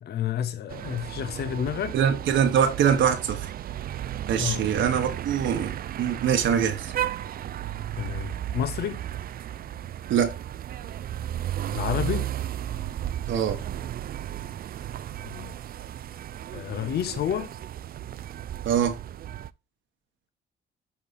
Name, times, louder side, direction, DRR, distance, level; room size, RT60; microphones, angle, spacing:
voice 1, 0.0-2.0 4.4-4.7 7.9-9.0 11.7-12.3 15.3-15.5 16.5-17.5, left 9 dB, 55° left, 0.6 m, -30 dB
sound 1, 0.7-19.5, right 11 dB, 50° right, 0.4 m, -34 dB
voice 2, 1.9-3.5 4.3-6.9 10.1-10.3 13.3-13.6 18.6-18.9, right 8 dB, 70° right, 1.2 m, -23 dB
8.5 x 3.7 x 4.0 m
cardioid pair, 90°, 20 cm